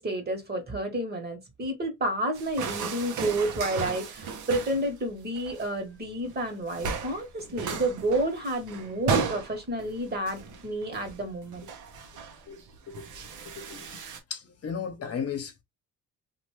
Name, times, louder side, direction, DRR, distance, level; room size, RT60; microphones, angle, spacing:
voice 1, 0.0-11.6, right 1 dB, 35° right, 1.4 m, -30 dB
sound 1, 2.3-4.9 5.2-5.7 6.2-6.4 6.7-14.2, right 5 dB, 75° right, 0.9 m, -35 dB
voice 2, 12.1-13.2 13.4-14.0 14.3-15.6, left 7 dB, 55° left, 1.0 m, -36 dB
2.6 x 2.6 x 3.1 m
cardioid pair, 90°, 30 cm